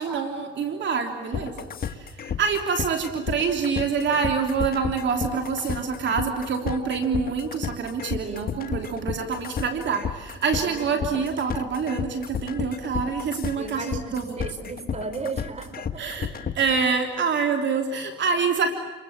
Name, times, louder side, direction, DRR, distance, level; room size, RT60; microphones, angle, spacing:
voice 1, 0.0-14.4 16.0-16.3 16.5-18.7, right 5 dB, 65° right, 4 dB, 3.2 m, -26 dB
sound 1, 1.3-16.8, left 7 dB, 50° left, 1.8 m, -31 dB
voice 2, 10.6-11.1 13.6-16.1, right 4 dB, 35° right, 10 dB, 4.5 m, -36 dB
29.5 x 23.0 x 7.3 m, 1.4 s
cardioid pair, 90°, 20 cm